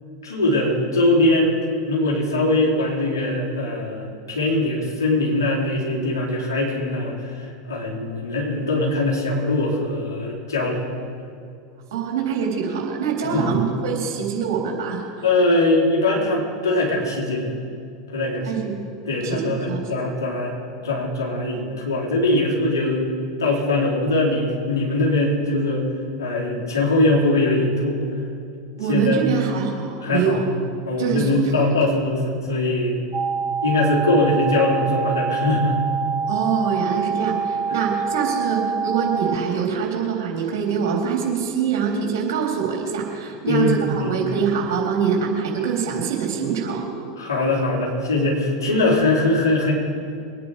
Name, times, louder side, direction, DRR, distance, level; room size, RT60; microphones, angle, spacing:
voice 1, 0.2-1.5 1.9-10.9 13.2-13.6 15.2-17.6 18.1-18.7 19.1-20.5 20.8-23.1 23.4-25.8 26.2-28.0 28.9-29.2 30.0-30.4 30.9-33.0 33.6-35.9 43.5-44.2 47.2-49.7, left 2 dB, 75° left, -4 dB, 4.4 m, -21 dB
voice 2, 11.9-15.3 18.4-18.8 19.2-19.9 28.8-30.4 31.0-31.6 36.3-46.9, right 6 dB, 60° right, -1 dB, 3.7 m, -24 dB
sound 1, 33.1-39.4, right 5 dB, 25° right, 0.7 m, -25 dB
23.5 x 9.8 x 5.1 m, 2.5 s
figure-of-eight pair, 85°, 2 cm